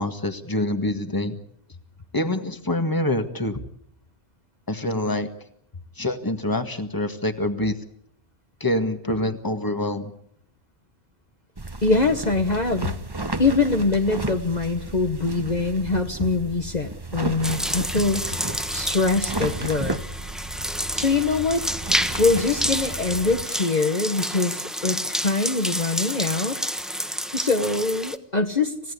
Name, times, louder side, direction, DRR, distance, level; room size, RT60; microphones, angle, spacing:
voice 1, 0.0-1.4 2.1-3.6 4.7-5.3 6.0-7.8 8.6-10.1, left 1 dB, 20° left, 8 dB, 1.8 m, -25 dB
sound 1, 11.6-23.4, right 2 dB, 20° right, 1.1 m, -33 dB
voice 2, 11.8-13.0 13.4-18.3 18.7-20.0 20.9-21.6 22.2-26.6 27.3-28.9, left 3 dB, 40° left, 5 dB, 1.5 m, -23 dB
sound 2, 17.4-28.2, equal, ahead, 1.2 m, -29 dB
29.0 x 17.0 x 8.5 m, 0.71 s
omnidirectional pair, 1.2 m